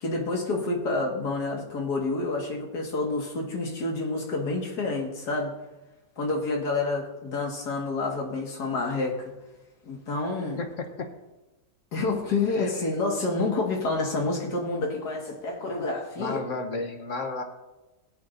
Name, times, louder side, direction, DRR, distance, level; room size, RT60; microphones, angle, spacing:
voice 1, 0.0-5.5 6.2-9.3 9.9-10.6 11.9-16.4, left 3 dB, 70° left, 0 dB, 2.3 m, -28 dB
voice 2, 10.6-11.1 12.5-12.7 16.2-17.4, left 3 dB, 50° left, 5 dB, 1.2 m, -33 dB
19.0 x 8.4 x 2.6 m, 1.1 s
omnidirectional pair, 1.8 m